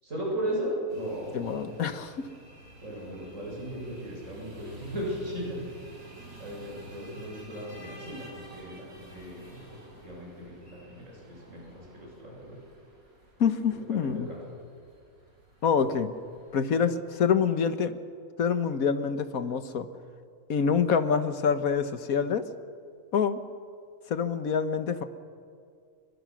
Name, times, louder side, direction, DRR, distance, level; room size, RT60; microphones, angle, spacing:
voice 1, 0.0-1.6 2.8-5.6 6.4-12.6 14.1-14.4, equal, 60° right, -3 dB, 7.9 m, -36 dB
sound 1, 0.9-16.6, right 1 dB, 80° right, 5.5 m, -51 dB
voice 2, 1.3-2.3 13.4-14.3 15.6-16.1 16.5-18.0 18.4-19.9 20.5-22.5 23.1-23.4 24.1-25.0, left 6 dB, 75° left, 10 dB, 1.6 m, -26 dB
28.5 x 22.5 x 6.3 m, 2.2 s
omnidirectional pair, 1.5 m